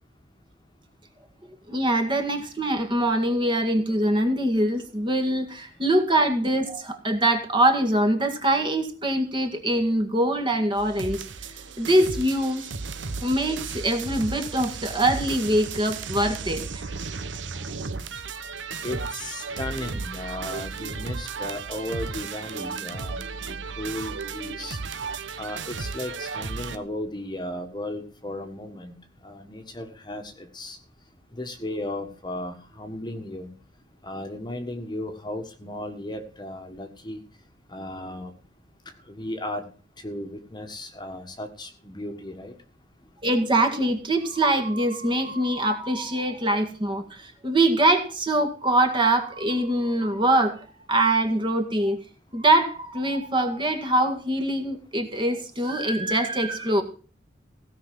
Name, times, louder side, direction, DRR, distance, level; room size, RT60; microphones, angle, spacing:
voice 1, 1.7-11.3 11.8-12.7 13.2-16.9 43.2-50.6 50.9-52.0 52.3-56.8, right 1 dB, 25° right, 6 dB, 1.9 m, -23 dB
sound 1, 10.8-26.8, right 4 dB, 80° right, 1.1 m, -34 dB
voice 2, 18.8-24.8 25.4-29.0 29.2-30.8 31.3-33.5 34.0-37.2 37.7-38.3 39.1-39.7 40.0-42.5, left 1 dB, 25° left, 6 dB, 1.5 m, -35 dB
16.5 x 5.8 x 7.6 m, 0.39 s
head